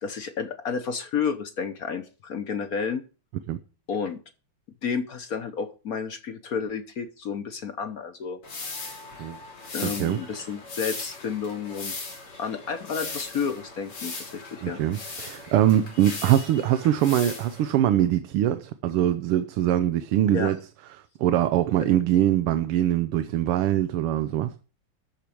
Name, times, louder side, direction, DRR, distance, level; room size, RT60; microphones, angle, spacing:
voice 1, 0.0-3.0 3.9-4.2 4.8-8.4 9.7-12.1 12.4-14.8 20.3-20.5, left 6 dB, 55° left, 1.1 m, -31 dB
sound 1, 8.4-17.8, left 3 dB, 85° left, 4.1 m, -38 dB
voice 2, 9.8-10.2 14.6-20.6 21.2-24.5, right 12 dB, 85° right, 1.7 m, -23 dB
13.5 x 4.5 x 8.6 m
omnidirectional pair, 2.4 m